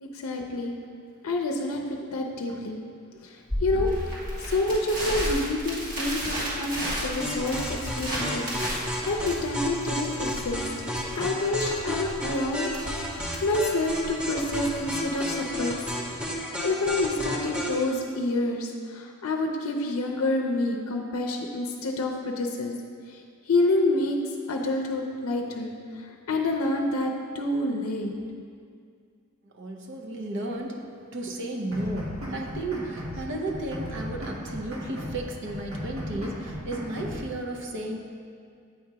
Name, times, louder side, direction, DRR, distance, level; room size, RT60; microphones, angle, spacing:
voice 1, 0.0-0.7 1.2-2.8 3.2-3.9 4.5-8.5 9.0-10.6 11.1-12.7 13.4-15.8 16.6-22.7 23.1-23.2 23.5-24.2 24.5-28.2, left 2 dB, 85° left, 1 dB, 0.5 m, -28 dB
Crackle, 3.5-15.5, equal, 40° right, 1.6 m, -33 dB
sound 1, 7.2-17.8, equal, 5° right, 0.6 m, -32 dB
voice 2, 29.5-38.0, right 1 dB, 55° right, 1 dB, 0.7 m, -34 dB
sound 2, 31.7-33.2 33.5-35.2 35.5-37.2, equal, 80° right, 1.3 m, -36 dB
8.4 x 2.8 x 4.7 m, 2.2 s
head